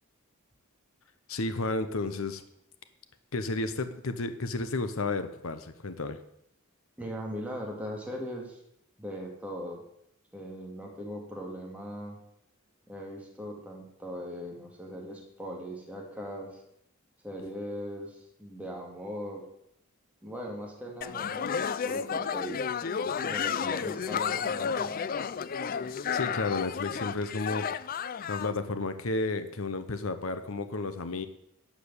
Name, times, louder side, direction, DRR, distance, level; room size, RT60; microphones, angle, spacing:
voice 1, 1.3-2.4 3.3-6.2 26.1-27.7 28.3-31.3, left 3 dB, 70° left, 10 dB, 0.9 m, -32 dB
voice 2, 7.0-8.6 9.0-9.8 10.3-12.2 12.9-16.6 17.2-19.4 20.2-22.6 23.0-24.9, equal, 5° right, -1 dB, 2.4 m, -39 dB
sound 1, 21.0-28.5, left 7 dB, 40° left, 0.4 m, -32 dB
11.5 x 5.1 x 8.3 m, 0.75 s
head